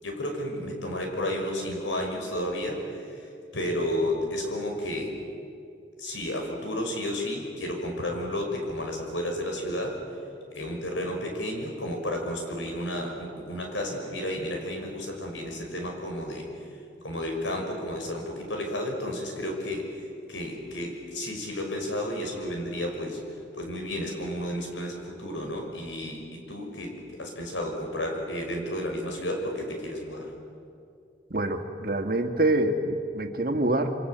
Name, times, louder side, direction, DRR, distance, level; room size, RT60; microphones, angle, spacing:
voice 1, 0.0-5.1 6.0-10.0 10.5-16.7 17.0-23.2 23.5-30.3, left 1 dB, 85° left, 2 dB, 6.2 m, -32 dB
voice 2, 31.3-34.0, right 1 dB, 50° right, 5 dB, 1.9 m, -26 dB
28.0 x 25.5 x 8.1 m, 2.5 s
head